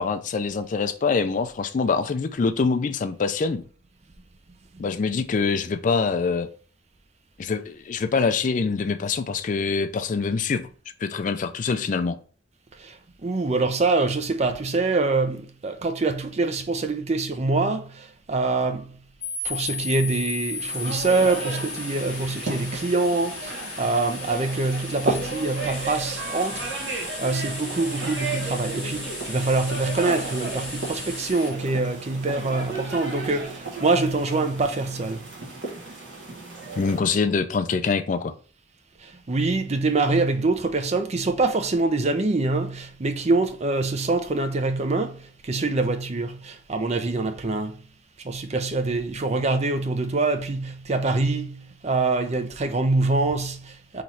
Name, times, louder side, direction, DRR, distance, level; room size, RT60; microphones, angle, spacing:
voice 1, 0.0-3.6 4.8-6.5 7.4-10.7 11.0-12.2 36.8-38.3, left 4 dB, 45° left, 0.4 m, -24 dB
voice 2, 12.8-19.0 19.4-26.8 27.2-35.3 39.0-47.8 48.2-54.0, right 3 dB, 35° right, 0.5 m, -25 dB
sound 1, 19.2-31.5, left 4 dB, 5° left, 2.1 m, -36 dB
sound 2, 20.7-37.0, right 3 dB, 70° right, 1.6 m, -34 dB
sound 3, 25.7-31.3, right 3 dB, 85° right, 1.3 m, -40 dB
3.9 x 3.1 x 4.3 m
head